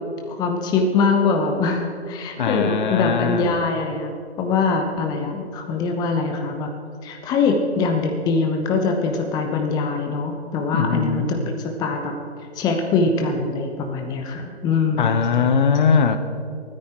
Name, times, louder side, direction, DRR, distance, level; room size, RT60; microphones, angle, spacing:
voice 1, 0.3-6.7 7.0-11.3 11.8-12.1 12.6-15.1 15.9-16.0, left 4 dB, 10° left, 3 dB, 0.9 m, -23 dB
voice 2, 2.4-3.6 10.7-11.3 15.0-16.2, left 6 dB, 50° left, 9 dB, 1.0 m, -20 dB
23.0 x 9.8 x 4.4 m, 2.3 s
figure-of-eight pair, 135°, 32 cm